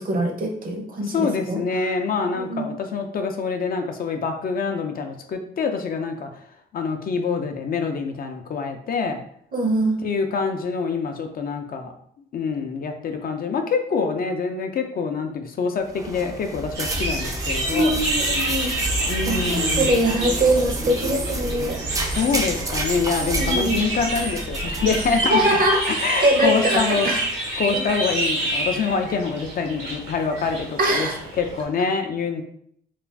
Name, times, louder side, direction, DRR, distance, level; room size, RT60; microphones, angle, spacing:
voice 1, 0.0-1.6 2.3-2.7 9.5-10.0 17.7-18.9 19.3-21.8 23.4-23.8 25.3-27.2 27.7-27.8 30.8-31.2, right 1 dB, 45° right, 2 dB, 0.7 m, -23 dB
voice 2, 1.0-6.3 6.7-9.2 10.0-11.9 12.3-18.0 19.1-19.9 22.2-25.4 25.9-27.1 27.6-31.1 31.4-32.4, left 5 dB, 50° left, 5 dB, 0.4 m, -25 dB
sound 1, 15.8-25.8, right 1 dB, 15° right, 0.4 m, -30 dB
sound 2, 16.7-31.6, right 2 dB, 80° right, 1.0 m, -28 dB
2.4 x 2.3 x 3.3 m, 0.68 s
cardioid pair, 90°, 20 cm